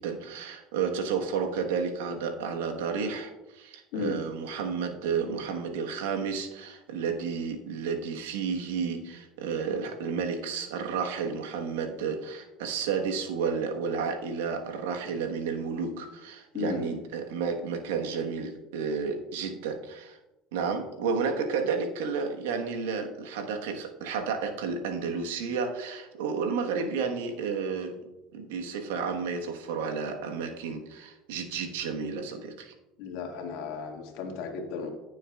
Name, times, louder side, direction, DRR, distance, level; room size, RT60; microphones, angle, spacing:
voice 1, 0.0-20.2 20.5-28.0 28.3-32.7, right 5 dB, 80° right, 4 dB, 1.3 m, -31 dB
voice 2, 16.5-16.9 33.0-34.9, left 5 dB, 70° left, 2 dB, 1.9 m, -34 dB
15.5 x 7.0 x 2.4 m, 0.99 s
hypercardioid pair, 80°, 0 cm